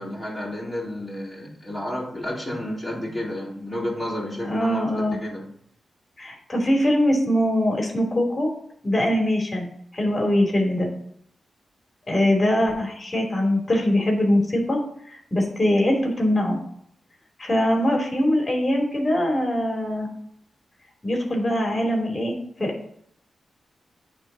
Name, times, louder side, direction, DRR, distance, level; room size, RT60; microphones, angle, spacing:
voice 1, 0.0-5.5, left 1 dB, ahead, -5 dB, 3.9 m, -31 dB
voice 2, 4.5-5.2 6.2-8.5 8.8-10.9 12.1-14.8 15.1-16.6 17.4-20.1 21.0-22.9, left 1 dB, 30° left, 1 dB, 3.1 m, -22 dB
8.9 x 4.0 x 6.3 m, 0.68 s
cardioid pair, 65°, 0 cm